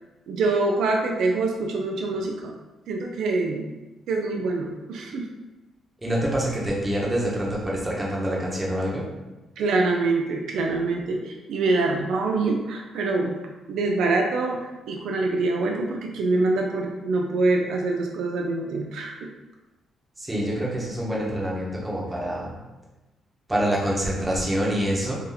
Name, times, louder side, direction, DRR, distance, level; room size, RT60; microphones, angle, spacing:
voice 1, 0.3-2.6 2.9-3.7 4.1-5.3 9.6-13.4 13.7-19.2, right 3 dB, 75° right, 1 dB, 0.4 m, -25 dB
voice 2, 6.0-9.1 20.2-22.6 23.5-25.2, equal, 15° right, -5 dB, 1.0 m, -26 dB
2.8 x 2.6 x 3.9 m, 1.1 s
cardioid pair, 90°, 0 cm